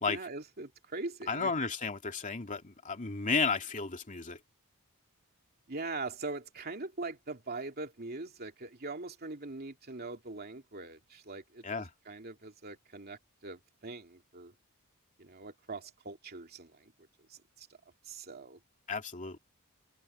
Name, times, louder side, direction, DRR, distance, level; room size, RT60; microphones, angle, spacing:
voice 1, 0.1-1.5 5.7-11.6 12.1-14.5 15.2-16.9 17.3-17.7 18.1-18.6, right 3 dB, 45° right, 2.8 m, -42 dB
voice 2, 1.3-4.4 11.6-11.9 18.9-19.4, left 4 dB, 35° left, 2.5 m, -33 dB
head